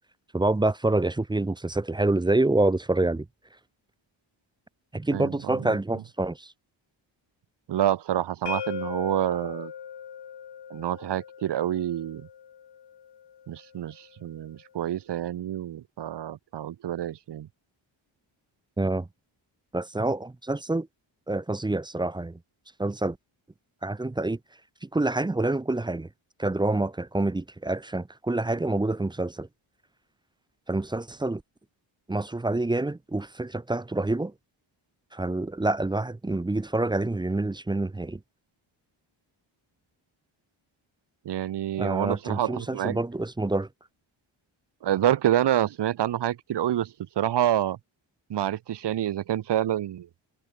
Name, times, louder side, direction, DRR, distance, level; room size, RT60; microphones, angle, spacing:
voice 1, 0.3-3.3 4.9-6.5 18.8-19.1 19.7-20.9 21.3-22.4 22.8-23.2 23.8-24.4 24.8-26.1 26.4-29.5 30.7-31.4 32.1-34.3 35.1-38.2 41.8-43.7, right 2 dB, 10° right, 0.6 m, -27 dB
voice 2, 5.1-5.8 7.7-9.7 10.7-12.3 13.5-17.5 41.2-43.0 44.8-47.8 48.3-50.1, right 11 dB, 60° right, 0.9 m, -27 dB
sound 1, 8.5-14.3, left 8 dB, 55° left, 4.2 m, -40 dB
wide cardioid pair, 165°, 48 cm